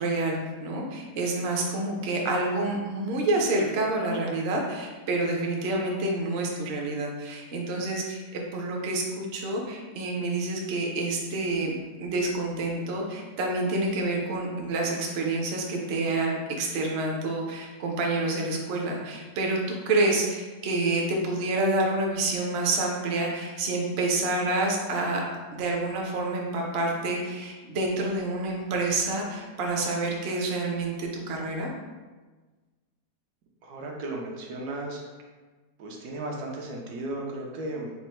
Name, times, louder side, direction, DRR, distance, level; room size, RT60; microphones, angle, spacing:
voice 1, 0.0-25.2 25.5-31.7, right 2 dB, 60° right, 0 dB, 0.7 m, -28 dB
voice 2, 33.6-35.0 35.8-37.9, right 2 dB, 75° right, 0 dB, 1.2 m, -35 dB
4.2 x 2.0 x 4.2 m, 1.3 s
omnidirectional pair, 1.7 m